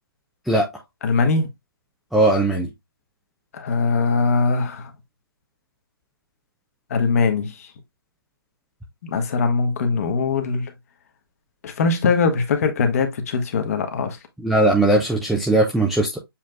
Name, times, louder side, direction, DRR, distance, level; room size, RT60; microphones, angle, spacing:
voice 1, 1.0-1.5 3.5-4.9 6.9-7.7 9.0-10.7 11.6-14.2, left 4 dB, 40° left, 1.1 m, -21 dB
voice 2, 2.1-2.7 14.4-16.2, right 2 dB, ahead, 0.3 m, -19 dB
7.2 x 3.2 x 2.2 m
hypercardioid pair, 150°, 13 cm